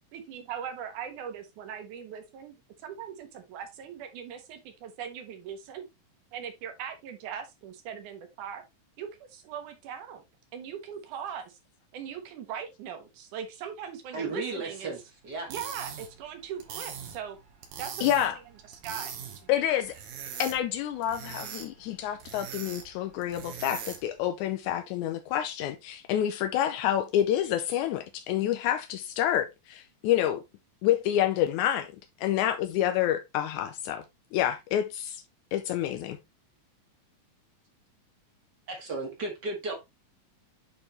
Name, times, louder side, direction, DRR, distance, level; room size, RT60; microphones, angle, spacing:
voice 1, 0.1-2.6 2.8-5.9 6.3-8.6 9.0-10.2 10.5-11.6 11.9-14.9 15.5-17.4 17.8-18.2 18.8-19.8, right 8 dB, 65° right, 2.6 m, -40 dB
voice 2, 14.1-15.0 15.2-15.5 38.7-39.7, right 3 dB, 40° right, 1.5 m, -34 dB
sound 1, 15.3-24.2, right 7 dB, 85° right, 3.2 m, -42 dB
voice 3, 18.0-18.3 19.5-19.9 20.4-30.4 30.8-31.9 32.2-34.0 34.3-35.2 35.5-36.2, left 11 dB, 85° left, 1.8 m, -28 dB
8.7 x 4.4 x 3.1 m
omnidirectional pair, 4.0 m